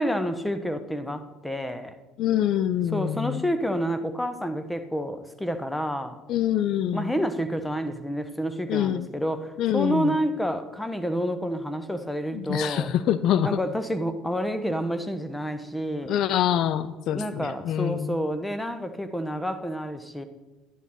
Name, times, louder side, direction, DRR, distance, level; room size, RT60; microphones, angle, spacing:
voice 1, 0.0-1.9 2.9-6.2 6.9-12.9 13.4-16.2 17.1-20.2, equal, 5° left, 10 dB, 1.2 m, -29 dB
voice 2, 2.2-3.4 6.3-7.1 8.7-9.1 9.6-10.2 12.3-13.6 16.1-18.2, left 10 dB, 60° left, 14 dB, 0.5 m, -25 dB
11.5 x 10.5 x 4.4 m, 1.1 s
hypercardioid pair, 65°, 0 cm